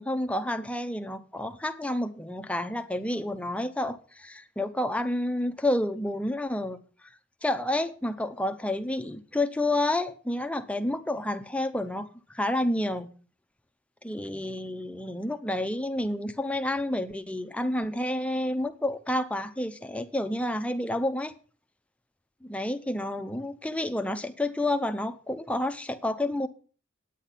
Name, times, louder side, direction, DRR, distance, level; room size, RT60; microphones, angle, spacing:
voice 1, 0.0-6.8 7.4-13.1 14.0-21.3 22.4-26.5, left 1 dB, 5° left, 0.6 m, -29 dB
9.1 x 8.4 x 5.7 m
head